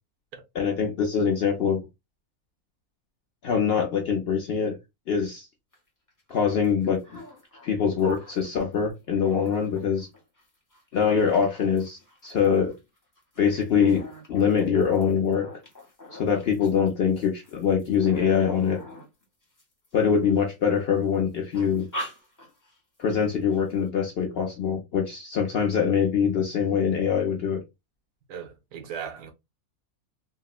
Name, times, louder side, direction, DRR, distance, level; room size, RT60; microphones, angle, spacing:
voice 1, 0.6-1.9 3.4-4.8 5.1-5.5 6.3-7.2 7.6-10.1 10.9-12.8 13.4-15.5 16.1-18.8 19.9-21.9 23.0-27.6, left 7 dB, 60° left, 0.6 m, -24 dB
sound 1, 5.7-5.8 6.1-8.6 9.0-20.3 20.8-21.1 21.5-22.8 23.1-23.2 23.5-23.9, equal, 20° left, 0.6 m, -44 dB
voice 2, 28.3-29.3, right 7 dB, 80° right, 1.2 m, -37 dB
3.5 x 2.0 x 2.3 m
omnidirectional pair, 1.6 m